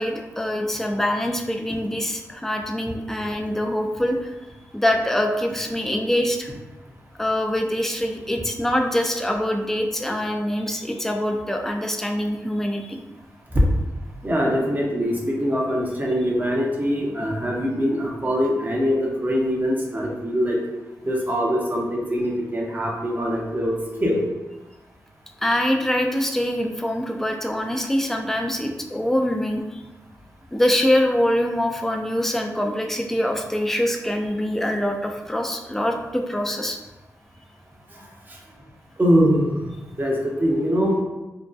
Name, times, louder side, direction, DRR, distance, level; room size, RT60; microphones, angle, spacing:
voice 1, 0.0-4.3 4.7-6.5 7.2-13.0 25.4-29.8 30.5-36.8, left 1 dB, 5° left, 3 dB, 0.3 m, -24 dB
voice 2, 14.2-20.6 21.0-23.7 24.0-24.2 39.0-41.0, equal, 30° right, -2 dB, 0.6 m, -22 dB
2.6 x 2.2 x 2.2 m, 1.1 s
cardioid pair, 65°, 6 cm